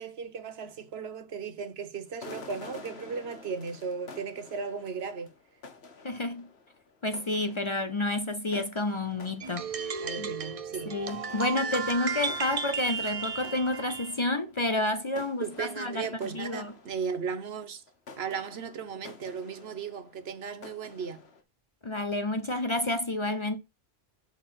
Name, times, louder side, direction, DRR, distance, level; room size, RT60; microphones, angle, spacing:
voice 1, 0.0-5.3 10.0-11.0 15.4-17.8 18.2-21.2, right 6 dB, 75° right, 1.2 m, -36 dB
sound 1, 2.1-10.7 11.0-17.6 17.9-21.4, left 4 dB, 75° left, 1.4 m, -50 dB
voice 2, 6.0-6.5 7.0-10.3 10.9-16.1 16.3-16.7 21.8-23.6, left 2 dB, 35° left, 0.6 m, -30 dB
sound 2, 9.4-14.2, right 6 dB, 40° right, 0.6 m, -34 dB
6.4 x 4.1 x 5.8 m
omnidirectional pair, 1.1 m